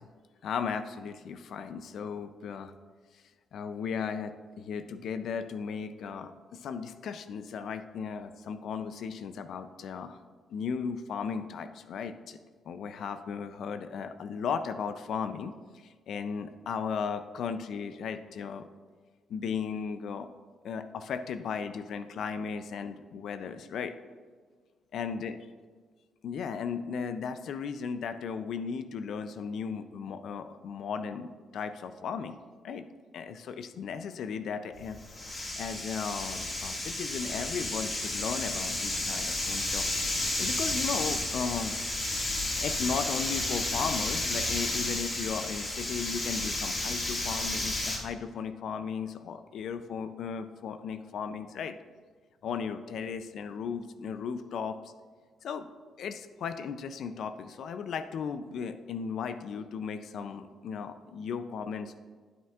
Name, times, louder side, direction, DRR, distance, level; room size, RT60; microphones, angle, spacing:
voice 1, 0.4-2.7 3.5-10.2 10.5-12.4 12.7-15.5 16.1-18.7 19.3-20.3 20.6-23.9 24.9-25.4 26.2-32.4 32.6-32.8 33.1-35.0 35.6-39.8 40.4-41.7 42.6-51.7 52.4-54.8 55.4-55.7 56.0-61.9, left 6 dB, 70° left, 10 dB, 0.4 m, -36 dB
sound 1, 34.7-48.0, left 2 dB, 35° left, 1.9 m, -32 dB
9.3 x 8.5 x 2.4 m, 1.5 s
cardioid pair, 90°, 0 cm